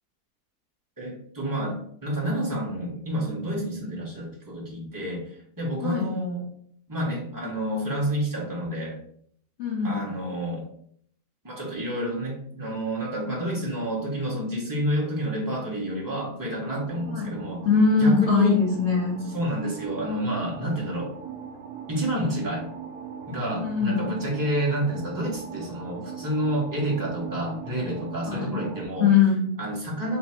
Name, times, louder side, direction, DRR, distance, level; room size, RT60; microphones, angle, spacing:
voice 1, 1.0-6.4 6.9-9.0 9.8-10.6 11.4-17.6 17.9-18.6 19.3-21.1 21.9-22.7 23.3-29.1 29.6-30.2, right 1 dB, 15° right, -3 dB, 1.1 m, -29 dB
voice 2, 5.8-6.1 9.6-10.1 17.1-17.3 17.6-19.3 23.6-24.0 28.2-28.6 29.0-29.4, left 5 dB, 55° left, -2 dB, 0.8 m, -22 dB
sound 1, 16.7-28.9, right 7 dB, 80° right, 1.1 m, -40 dB
3.3 x 3.0 x 4.3 m, 0.63 s
omnidirectional pair, 1.8 m